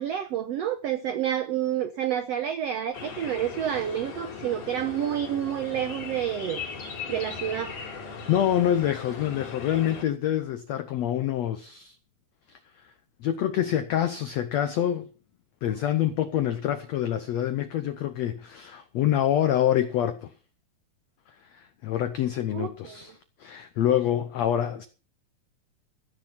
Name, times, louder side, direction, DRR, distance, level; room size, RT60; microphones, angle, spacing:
voice 1, 0.0-6.6 7.1-7.7 22.5-23.1, right 10 dB, 85° right, 1.4 m, -29 dB
sound 1, 2.9-10.0, left 5 dB, 55° left, 4.9 m, -38 dB
voice 2, 8.3-11.9 12.5-12.6 13.2-15.1 15.6-20.3 21.5-23.1 23.4-24.9, left 11 dB, 85° left, 1.5 m, -26 dB
15.0 x 9.7 x 5.7 m
omnidirectional pair, 4.3 m